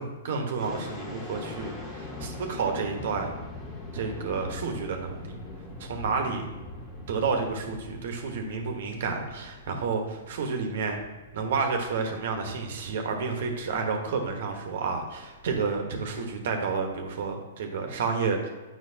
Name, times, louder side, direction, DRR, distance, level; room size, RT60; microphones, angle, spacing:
voice 1, 0.0-3.3 3.9-5.3 5.8-6.5 7.1-11.0 11.3-18.5, right 5 dB, 65° right, 3 dB, 1.2 m, -30 dB
sound 1, 0.6-17.3, left 2 dB, 25° left, 1.6 m, -43 dB
7.6 x 5.7 x 2.8 m, 1.2 s
hypercardioid pair, 120°, 0 cm